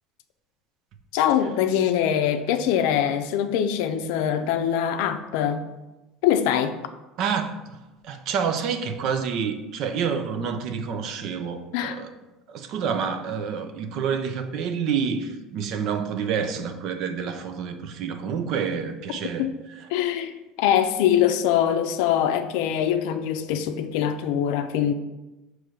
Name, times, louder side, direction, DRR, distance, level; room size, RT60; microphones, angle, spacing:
voice 1, 1.1-5.6 6.2-6.7 11.7-12.0 19.4-19.5 19.9-20.3 20.6-24.9, left 9 dB, 75° left, 8 dB, 0.5 m, -23 dB
voice 2, 7.2-7.8 8.0-12.1 12.5-19.5, right 6 dB, 45° right, 8 dB, 0.5 m, -28 dB
6.1 x 3.1 x 5.0 m, 1.0 s
cardioid pair, 165°, 0 cm